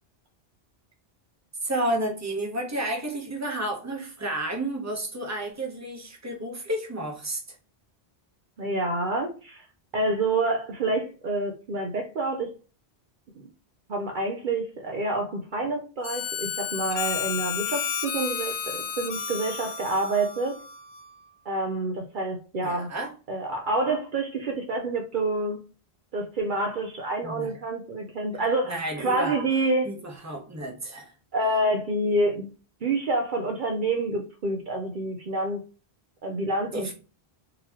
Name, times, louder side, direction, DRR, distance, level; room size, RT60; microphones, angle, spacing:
voice 1, 1.6-7.4 22.6-23.1 27.2-27.5 28.6-29.3 29.8-31.1 36.7-36.9, right 1 dB, 15° right, 0.9 m, -31 dB
voice 2, 8.6-9.7 9.9-12.5 13.9-20.6 21.4-22.9 23.3-25.6 26.1-29.9 31.3-32.5 32.8-35.6 36.2-36.9, right 2 dB, 55° right, 0.8 m, -27 dB
Harmonica, 16.0-21.2, left 7 dB, 60° left, 0.7 m, -32 dB
3.8 x 2.9 x 2.9 m
omnidirectional pair, 1.0 m